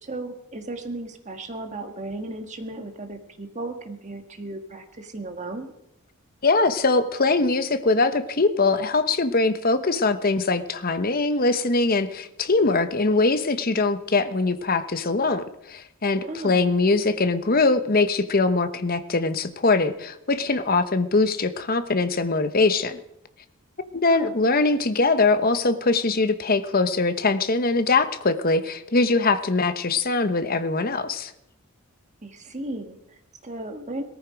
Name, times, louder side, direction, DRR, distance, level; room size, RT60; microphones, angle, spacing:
voice 1, 0.0-5.7 16.2-16.7 24.1-24.3 32.2-34.0, right 2 dB, 35° right, 6 dB, 1.6 m, -35 dB
voice 2, 6.4-23.0 24.0-31.3, left 3 dB, 45° left, 11 dB, 0.9 m, -22 dB
18.5 x 14.0 x 5.1 m, 0.80 s
head